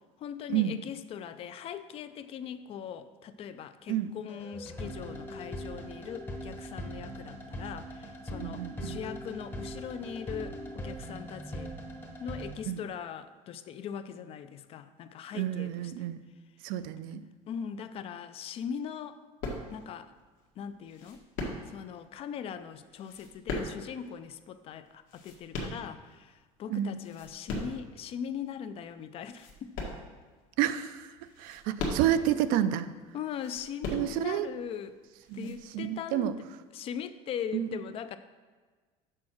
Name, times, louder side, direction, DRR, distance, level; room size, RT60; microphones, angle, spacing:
voice 1, 0.2-11.7 12.2-15.7 17.5-19.2 19.7-20.1 20.6-21.2 21.7-29.7 33.1-35.0 35.3-36.4 36.7-38.2, left 8 dB, 40° left, 11 dB, 0.4 m, -40 dB
sound 1, 4.3-12.6, equal, 15° left, 0.8 m, -41 dB
voice 2, 8.4-9.0 12.7-12.8 15.3-16.2 16.6-17.2 26.7-27.0 30.6-32.9 33.9-34.5 35.3-36.4 37.5-37.8, right 11 dB, 70° right, 12 dB, 0.4 m, -30 dB
sound 2, 19.4-20.0 20.9-22.0 22.9-24.1 24.9-26.3 26.8-27.9 28.4-28.5 29.2-30.5 31.2-32.4 33.3-34.5 35.2-35.6, left 2 dB, 65° left, 1.5 m, -38 dB
6.4 x 4.8 x 6.0 m, 1.4 s
cardioid pair, 140°, 15 cm